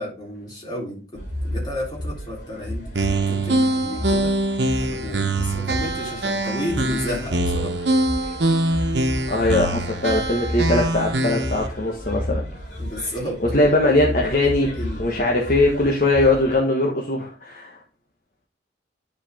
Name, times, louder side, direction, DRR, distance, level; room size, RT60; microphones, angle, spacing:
voice 1, 0.0-4.4 4.8-7.8 12.8-13.7 14.3-15.1, left 1 dB, 25° left, 3.6 m, -32 dB
sound 1, 1.1-16.6, equal, 75° left, 2.9 m, -32 dB
sound 2, 2.9-11.7, right 1 dB, 80° right, 1.1 m, -23 dB
voice 2, 9.3-12.4 13.5-14.7 15.0-17.8, left 2 dB, 50° left, 1.4 m, -20 dB
10.5 x 4.8 x 3.6 m
head